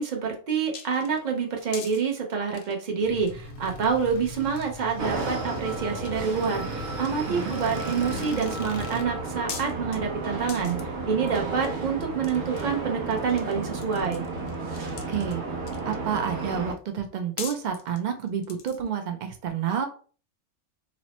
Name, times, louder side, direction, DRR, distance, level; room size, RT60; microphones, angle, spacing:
voice 1, 0.0-14.2, right 6 dB, 45° right, 1 dB, 0.7 m, -27 dB
sound 1, 0.7-2.0 2.5-3.3 3.6-3.9 4.4-5.1 5.4-5.5 5.8-6.5 6.9-7.8 8.4-8.9 9.5-10.0 10.5-10.8 11.3-11.7 12.0-13.5 13.8-16.1 16.9-17.0 17.4-18.9, left 7 dB, 85° left, 1.0 m, -41 dB
sound 2, 3.0-9.0, left 2 dB, 60° left, 0.6 m, -40 dB
sound 3, 5.0-16.7, right 3 dB, 60° right, 1.0 m, -33 dB
voice 2, 7.3-7.6 15.1-15.5 15.9-19.9, right 8 dB, 90° right, 6 dB, 0.4 m, -29 dB
2.9 x 2.0 x 4.0 m, 0.40 s
omnidirectional pair, 1.3 m